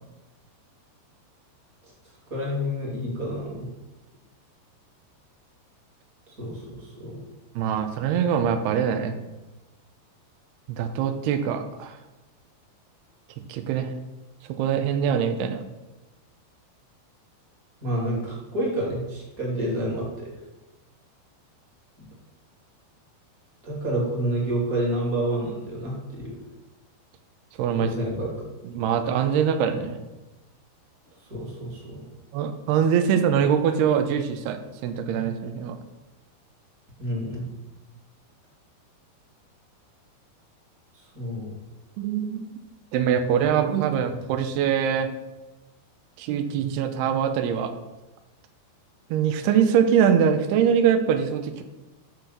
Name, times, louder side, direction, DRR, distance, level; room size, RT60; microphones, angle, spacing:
voice 1, 2.3-3.7 6.3-7.2 17.8-20.3 22.0-22.1 23.6-26.4 27.8-28.5 31.2-32.0 37.0-37.5 40.9-41.5, right 1 dB, 25° right, -3 dB, 2.5 m, -29 dB
voice 2, 7.6-9.2 10.7-12.0 13.5-13.9 14.6-15.6 27.6-28.0 28.6-30.0 32.3-35.8 42.0-42.5 42.9-45.1 46.2-47.7 49.1-51.6, right 8 dB, 75° right, 8 dB, 2.6 m, -23 dB
12.5 x 4.5 x 6.7 m, 1.1 s
omnidirectional pair, 5.0 m